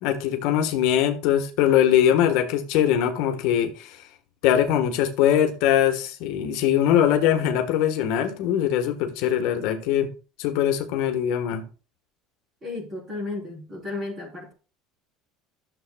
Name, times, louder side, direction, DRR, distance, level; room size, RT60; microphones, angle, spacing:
voice 1, 0.0-4.0 4.4-10.1 10.4-11.6, left 10 dB, 60° left, 1.2 m, -22 dB
voice 2, 12.6-14.5, left 3 dB, 20° right, 3.4 m, -33 dB
13.0 x 7.0 x 2.3 m
cardioid pair, 165°, 0 cm